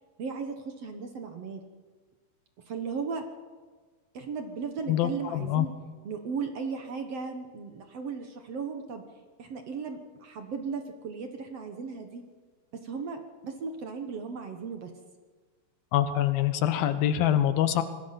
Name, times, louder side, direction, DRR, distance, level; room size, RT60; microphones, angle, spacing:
voice 1, 0.2-1.6 2.7-3.2 4.1-5.7 6.0-9.0 9.4-12.2 12.7-14.9, right 5 dB, 55° right, 5 dB, 2.0 m, -36 dB
voice 2, 4.9-5.7 15.9-17.8, left 11 dB, 90° left, 11 dB, 3.0 m, -25 dB
26.0 x 20.0 x 5.9 m, 1.4 s
omnidirectional pair, 4.1 m